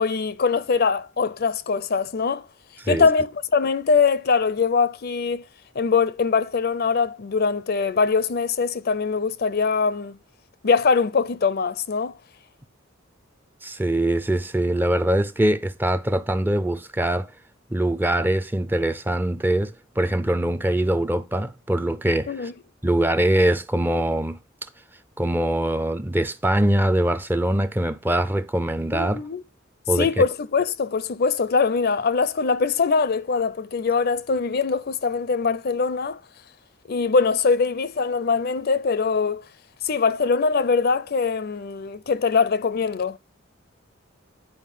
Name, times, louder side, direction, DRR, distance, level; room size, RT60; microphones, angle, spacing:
voice 1, 0.0-2.5 2.9-5.4 5.7-10.2 10.6-12.1 22.3-22.5 28.9-29.4 30.0-36.2 36.9-39.4 39.8-43.2, left 5 dB, 50° left, 0.5 m, -22 dB
voice 2, 13.6-17.3 17.7-22.5 22.8-24.4 25.2-29.2 29.9-30.2, right 1 dB, 10° right, 0.5 m, -23 dB
9.3 x 4.8 x 5.5 m
head